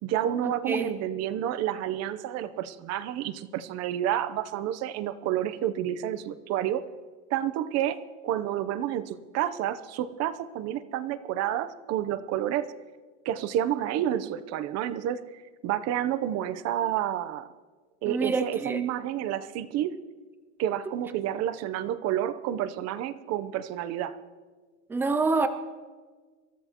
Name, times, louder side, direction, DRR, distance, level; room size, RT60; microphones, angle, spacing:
voice 1, 0.0-6.9 7.3-12.7 13.2-17.5 18.0-20.0 20.6-24.2, right 11 dB, 35° right, 13 dB, 0.8 m, -30 dB
voice 2, 18.1-18.8 24.9-25.5, right 3 dB, 5° right, 9 dB, 0.3 m, -26 dB
27.5 x 14.0 x 3.0 m, 1.4 s
supercardioid pair, 145°, 45 cm